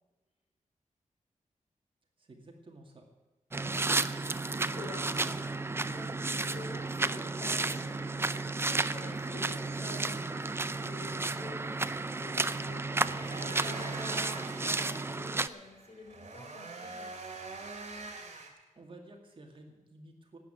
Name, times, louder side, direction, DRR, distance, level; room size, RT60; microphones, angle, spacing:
voice 1, 2.2-3.1 18.8-20.4, right 2 dB, 40° right, 2 dB, 2.2 m, -52 dB
sound 1, 3.5-15.5, right 3 dB, 20° right, 0.4 m, -32 dB
voice 2, 4.7-8.3 8.6-17.1, left 2 dB, 55° left, 2 dB, 3.8 m, -49 dB
sound 2, 11.9-18.5, right 3 dB, 55° right, 2.8 m, -46 dB
12.5 x 9.4 x 8.9 m, 1.2 s
wide cardioid pair, 165°, 13 cm